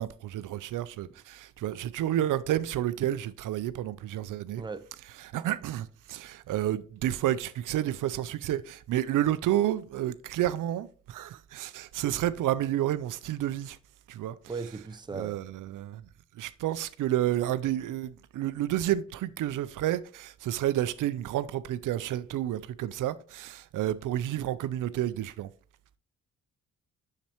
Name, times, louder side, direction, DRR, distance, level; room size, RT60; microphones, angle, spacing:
voice 1, 0.0-4.6 5.2-13.8 14.1-14.4 15.1-16.0 16.4-25.5, right 12 dB, 80° right, 0.5 m, -30 dB
voice 2, 14.5-15.4, right 4 dB, 15° right, 0.6 m, -37 dB
7.2 x 6.7 x 3.0 m
cardioid pair, 80°, 31 cm